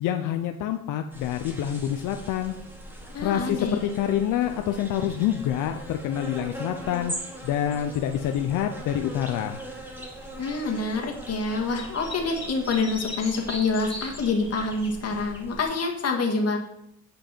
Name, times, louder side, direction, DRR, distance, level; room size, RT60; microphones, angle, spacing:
voice 1, 0.0-2.5 3.2-7.1 7.4-9.6, left 10 dB, 90° left, 6 dB, 0.6 m, -27 dB
sound 1, 1.1-15.7, right 1 dB, 5° right, 1.9 m, -41 dB
voice 2, 3.1-4.0 10.4-16.6, left 3 dB, 55° left, 2 dB, 1.9 m, -27 dB
sound 2, 11.7-14.9, left 2 dB, 20° left, 2.5 m, -38 dB
8.9 x 5.3 x 4.4 m, 0.78 s
cardioid pair, 90°, 30 cm